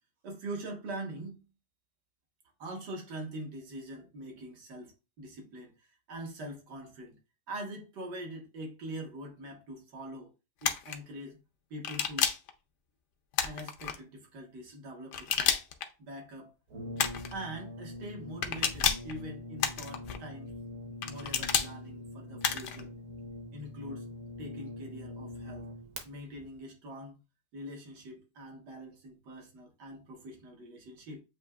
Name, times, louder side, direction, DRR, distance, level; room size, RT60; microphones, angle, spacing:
voice 1, 0.2-1.4 2.6-7.2 7.5-10.3 10.6-11.4 11.7-12.3 13.4-15.6 16.0-16.5 17.3-20.6 21.0-23.0 23.5-24.1 24.4-25.7 26.0-27.2 27.5-31.2, right 1 dB, 80° right, 1.8 m, -43 dB
sound 1, 10.6-11.0 11.8-12.5 13.3-14.0 15.1-15.9 17.0-17.3 18.4-19.1 19.6-20.2 21.0-21.7 22.4-22.8, left 7 dB, 65° left, 0.7 m, -30 dB
Brass instrument, 16.7-26.0, left 1 dB, 55° right, 1.3 m, -44 dB
8.1 x 2.8 x 2.3 m
omnidirectional pair, 1.8 m